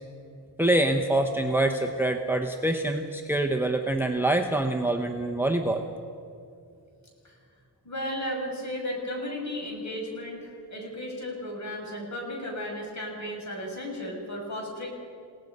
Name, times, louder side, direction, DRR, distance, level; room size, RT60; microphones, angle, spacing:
voice 1, 0.6-5.8, right 1 dB, 5° right, 5 dB, 0.8 m, -25 dB
voice 2, 7.8-14.9, left 1 dB, 40° left, -1 dB, 6.5 m, -34 dB
29.5 x 18.0 x 5.4 m, 2.5 s
wide cardioid pair, 140°, 44 cm